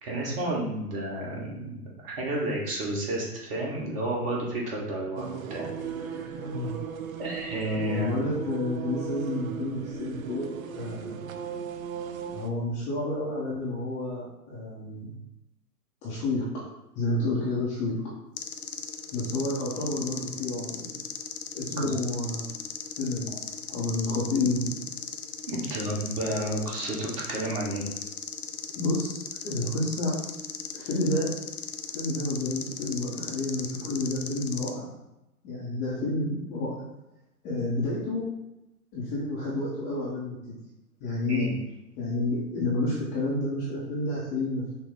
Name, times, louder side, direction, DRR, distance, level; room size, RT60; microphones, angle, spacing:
voice 1, 0.0-5.7 6.0-6.4 7.2-8.3 21.8-21.9 25.5-27.8 41.3-41.5, right 1 dB, 35° right, -3 dB, 1.4 m, -31 dB
sound 1, 5.2-12.5, right 7 dB, 60° right, 0.5 m, -36 dB
voice 2, 6.4-6.8 7.8-11.2 12.3-15.1 16.0-16.6 16.9-18.0 19.1-21.0 21.5-22.4 23.0-24.8 28.8-30.2 30.7-31.3 31.9-34.9 35.4-36.7 37.4-38.3 38.9-40.6 41.0-41.5 42.0-44.8, left 2 dB, 15° left, -8 dB, 0.6 m, -30 dB
sound 2, 18.4-34.7, left 7 dB, 65° left, 0.7 m, -38 dB
5.9 x 2.0 x 3.9 m, 0.92 s
figure-of-eight pair, 115°, 47 cm